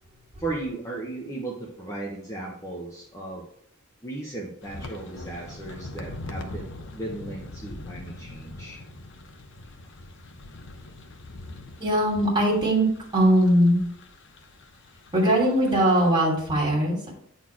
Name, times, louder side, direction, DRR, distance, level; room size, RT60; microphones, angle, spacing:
voice 1, 0.4-3.4 4.0-6.7 6.9-8.8, right 2 dB, 15° left, -2 dB, 1.0 m, -36 dB
sound 1, 4.6-16.1, left 2 dB, 55° left, 0.8 m, -42 dB
voice 2, 11.8-12.9 13.1-13.9 15.1-17.1, right 1 dB, 20° right, -4 dB, 3.0 m, -20 dB
9.1 x 4.2 x 4.6 m, 0.68 s
head